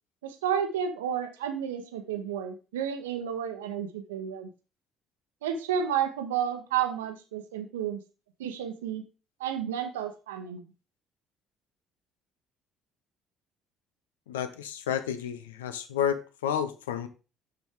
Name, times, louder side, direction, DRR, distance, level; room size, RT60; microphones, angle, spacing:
voice 1, 0.2-4.5 5.4-8.0 8.4-9.0 9.4-10.7, right 8 dB, 75° right, 7 dB, 0.9 m, -31 dB
voice 2, 14.3-17.1, left 9 dB, 75° left, 11 dB, 0.7 m, -31 dB
6.7 x 6.1 x 3.6 m, 0.33 s
figure-of-eight pair, 50°, 0 cm